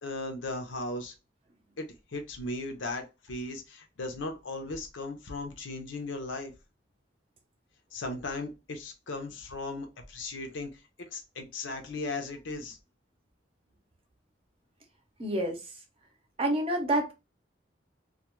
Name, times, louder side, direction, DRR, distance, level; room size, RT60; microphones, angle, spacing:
voice 1, 0.0-1.1 1.8-6.5 7.9-10.7 11.0-12.8, left 2 dB, 85° left, 0.7 m, -37 dB
voice 2, 15.2-15.6 16.4-17.1, right 1 dB, 30° right, 0.6 m, -27 dB
2.3 x 2.2 x 3.0 m
head